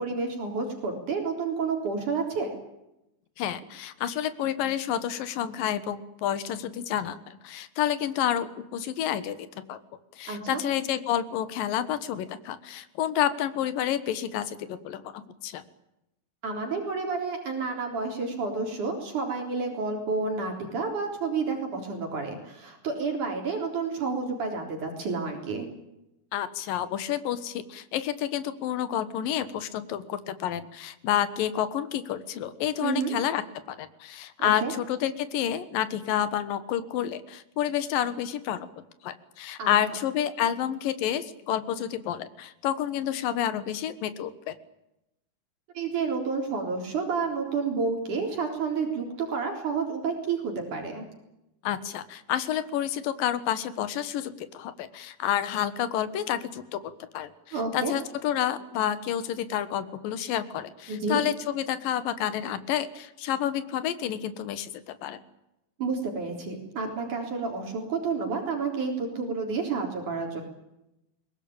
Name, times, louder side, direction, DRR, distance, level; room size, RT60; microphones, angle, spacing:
voice 1, 0.0-2.5 10.3-10.6 16.4-25.7 32.8-33.2 34.4-34.7 39.6-39.7 45.8-51.1 57.5-57.9 60.9-61.2 65.8-70.4, right 4 dB, 60° right, 2 dB, 5.2 m, -30 dB
voice 2, 3.4-9.8 10.2-15.6 26.3-33.4 33.7-38.7 39.0-44.5 51.6-56.8 57.1-57.3 57.7-65.2, left 10 dB, 75° left, 13 dB, 3.0 m, -29 dB
23.0 x 19.5 x 8.9 m, 0.88 s
omnidirectional pair, 4.1 m